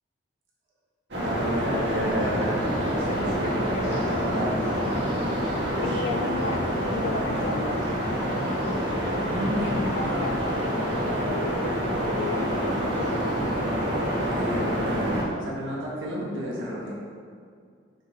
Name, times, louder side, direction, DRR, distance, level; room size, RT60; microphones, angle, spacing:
sound 1, 1.1-15.2, equal, 65° right, 1.9 m, -27 dB
voice 1, 1.2-4.9 9.2-9.7 10.0-10.3 14.2-17.0, equal, 90° right, -5 dB, 1.6 m, -32 dB
voice 2, 3.7-4.0 5.8-6.7 6.9-7.9 9.6-13.3, left 4 dB, 80° left, 4 dB, 0.4 m, -34 dB
5.9 x 5.6 x 5.0 m, 2.2 s
head